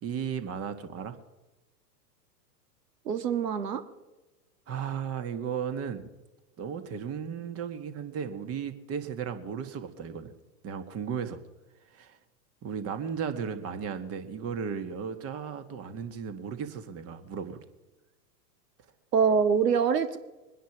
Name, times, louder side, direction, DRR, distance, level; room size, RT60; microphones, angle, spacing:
voice 1, 0.0-1.2 4.7-6.1 6.6-10.3 10.6-11.4 11.9-12.2 12.6-17.6, right 7 dB, 30° right, 10 dB, 1.7 m, -35 dB
voice 2, 3.1-3.8 19.1-20.2, right 6 dB, 75° right, 10 dB, 1.8 m, -24 dB
22.5 x 10.0 x 6.1 m, 1.1 s
hypercardioid pair, 110°, 49 cm